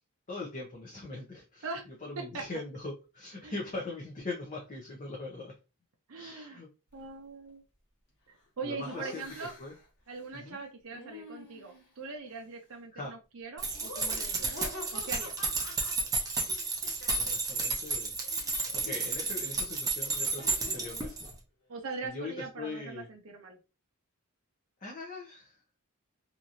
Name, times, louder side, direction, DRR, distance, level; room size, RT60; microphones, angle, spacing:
voice 1, 0.3-1.7 2.0-5.5 6.1-6.7 8.6-9.2 9.6-9.7 10.3-10.6 12.9-13.1 16.4-18.2 18.6-21.3 22.0-23.1 24.8-25.6, left 2 dB, 35° left, -2 dB, 0.6 m, -41 dB
voice 2, 6.1-6.6 6.9-7.6 8.3-9.5 10.1-14.5 14.9-15.3 21.7-23.6, right 4 dB, 65° right, 2 dB, 0.6 m, -41 dB
Laughter, 8.8-9.9 10.9-11.9 13.7-17.6 17.9-21.0, left 2 dB, 50° left, 1.3 m, -48 dB
sound 1, 13.6-21.3, right 3 dB, 15° right, 0.5 m, -32 dB
2.9 x 2.5 x 2.5 m, 0.30 s
head